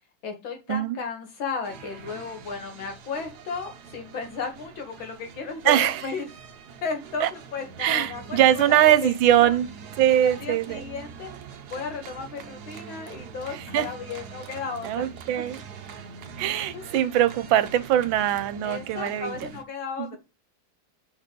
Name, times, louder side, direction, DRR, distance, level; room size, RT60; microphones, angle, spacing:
voice 1, 0.2-6.2 6.8-9.1 9.4-9.6 10.2-11.3 11.7-15.1 15.3-15.4 16.7-16.9 18.6-20.2, left 5 dB, 80° left, 2.4 m, -34 dB
sound 1, 1.6-19.6, right 6 dB, 60° right, 1.2 m, -43 dB
voice 2, 5.6-6.0 7.2-7.3 7.8-9.7 10.0-10.8 13.5-13.9 14.8-15.6 16.4-19.5 20.0-20.2, right 11 dB, 85° right, 1.5 m, -22 dB
5.6 x 4.5 x 5.2 m
omnidirectional pair, 2.1 m